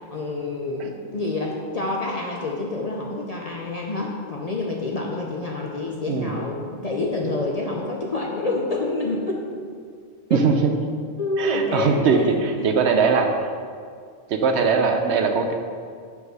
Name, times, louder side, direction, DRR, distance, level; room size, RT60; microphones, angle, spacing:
voice 1, 0.1-9.4 10.3-10.4 11.2-12.7, left 2 dB, 40° left, -2 dB, 0.6 m, -27 dB
voice 2, 10.3-10.7 11.4-13.3 14.3-15.5, right 5 dB, 70° right, 5 dB, 0.8 m, -20 dB
5.3 x 4.8 x 6.1 m, 2.1 s
omnidirectional pair, 1.3 m